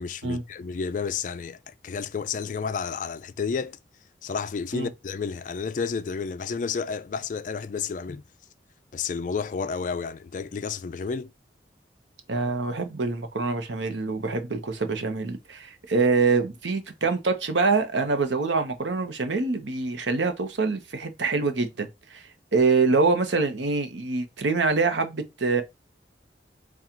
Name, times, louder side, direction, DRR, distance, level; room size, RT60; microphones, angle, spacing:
voice 1, 0.0-3.8 4.2-8.2 8.9-11.3, left 5 dB, 45° left, 0.3 m, -31 dB
voice 2, 12.3-22.2 22.5-25.6, right 4 dB, 80° right, 0.8 m, -25 dB
4.4 x 2.4 x 3.6 m
head